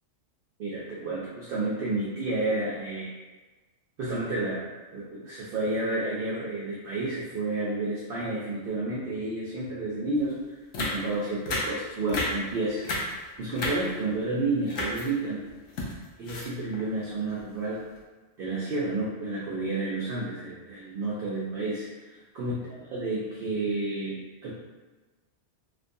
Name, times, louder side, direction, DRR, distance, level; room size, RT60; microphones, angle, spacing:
voice 1, 0.6-3.1 4.0-10.4 10.8-12.9 13.4-15.6 16.2-17.9 18.4-22.6 22.9-24.5, right 2 dB, 60° right, -6 dB, 0.6 m, -31 dB
sound 1, 10.2-10.3 10.7-11.1 11.5-11.8 12.1-12.5 12.8-13.2 13.5-14.1 14.6-15.1 15.5-16.9 17.4-17.5 17.8-18.0, left 1 dB, 80° left, 0.9 m, -32 dB
2.5 x 2.2 x 2.6 m, 1.2 s
omnidirectional pair, 1.2 m